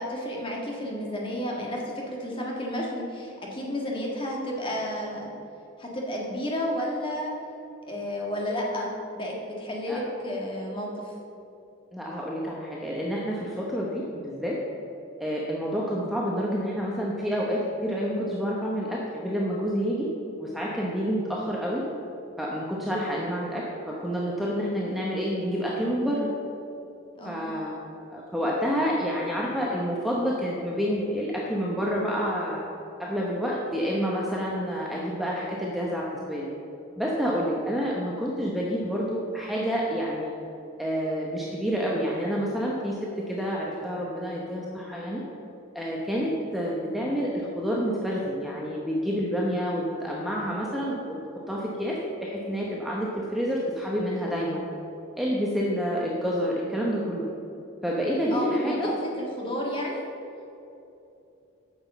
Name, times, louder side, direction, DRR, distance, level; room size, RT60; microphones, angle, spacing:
voice 1, 0.0-5.3 5.8-7.3 7.9-11.1 27.1-27.4 58.3-60.0, left 1 dB, 25° left, -2 dB, 1.7 m, -32 dB
voice 2, 11.9-14.6 15.2-20.1 20.4-21.8 22.4-26.3 27.2-27.7 28.1-32.6 33.0-36.5 37.0-40.3 40.8-45.2 45.7-51.2 51.5-54.6 55.2-57.3 57.8-58.9, equal, ahead, -4 dB, 0.9 m, -28 dB
9.2 x 6.4 x 7.2 m, 2.8 s
head